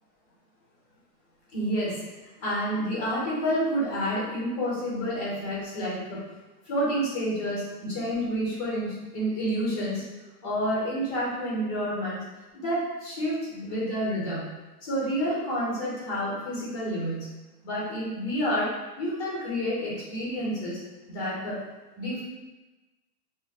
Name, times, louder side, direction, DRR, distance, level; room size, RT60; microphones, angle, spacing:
voice 1, 1.5-2.0 2.4-6.2 6.7-10.0 10.4-12.2 12.5-14.5 14.8-17.3 17.6-18.7 19.0-20.8 21.1-21.6 22.0-22.2, equal, 15° left, -6 dB, 0.3 m, -29 dB
2.8 x 2.2 x 3.5 m, 1.1 s
hypercardioid pair, 130°, 50 cm